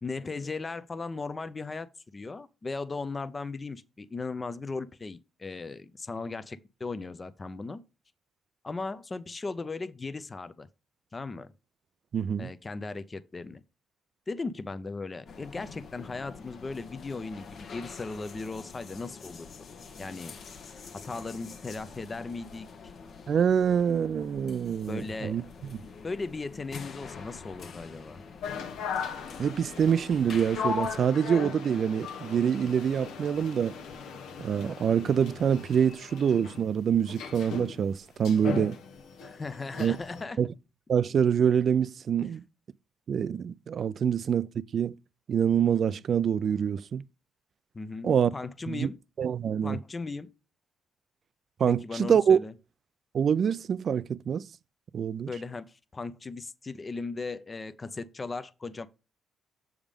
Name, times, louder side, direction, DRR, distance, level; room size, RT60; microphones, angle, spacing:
voice 1, 0.0-7.8 8.6-10.7 11.1-11.5 12.4-13.6 14.3-19.5 19.9-20.3 21.0-22.7 24.9-25.5 25.8-28.2 39.2-40.4 44.0-44.1 47.7-49.0 49.6-50.3 51.7-52.5 55.3-58.9, left 3 dB, 25° left, 0.6 m, -37 dB
voice 2, 12.1-12.5 23.3-25.4 29.4-33.8 34.4-38.8 39.8-40.0 40.4-40.5 40.9-42.4 43.1-44.9 45.3-47.0 48.0-48.3 48.7-48.9 49.2-49.8 51.6-52.4 53.1-54.5 54.9-55.3, right 8 dB, 55° right, 0.3 m, -25 dB
sound 1, 15.3-31.1, left 5 dB, 55° left, 0.9 m, -46 dB
sound 2, 28.4-40.2, left 6 dB, 85° left, 0.9 m, -38 dB
7.2 x 3.6 x 5.1 m
cardioid pair, 90°, 0 cm